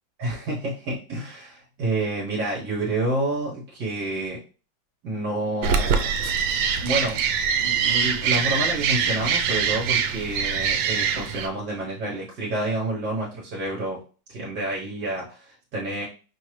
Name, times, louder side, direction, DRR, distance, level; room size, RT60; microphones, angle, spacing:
voice 1, 0.2-4.4 5.0-6.2 6.8-7.2 7.6-14.0 14.3-16.1, right 2 dB, 60° right, -3 dB, 1.6 m, -29 dB
sound 1, 5.6-11.5, right 6 dB, 90° right, 1.3 m, -23 dB
5.6 x 2.6 x 3.1 m, 0.36 s
omnidirectional pair, 2.1 m